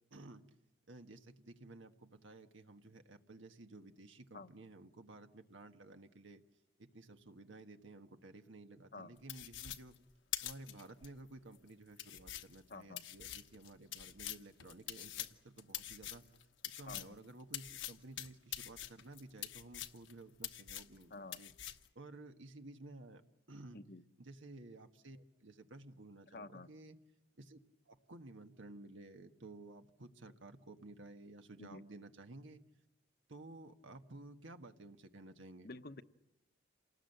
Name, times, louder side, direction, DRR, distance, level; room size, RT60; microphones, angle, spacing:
voice 1, 0.1-0.4 0.9-6.4 6.8-10.0 10.4-16.3 16.8-21.5 21.9-23.2 23.5-23.8 24.2-27.0 27.4-27.6 27.9-32.6 33.3-35.7, right 2 dB, 85° right, 6 dB, 1.5 m, -54 dB
sound 1, 9.3-11.1 11.5-11.6 12.0-17.2 17.5-20.1 20.4-21.0 21.3-21.9, left 12 dB, 80° left, 1.1 m, -45 dB
voice 2, 12.7-13.0 16.9-17.0 21.1-21.4 23.7-24.0 26.3-26.7 31.6-31.8 35.6-36.0, left 3 dB, 50° left, 10 dB, 0.8 m, -49 dB
28.5 x 19.0 x 8.0 m, 1.0 s
head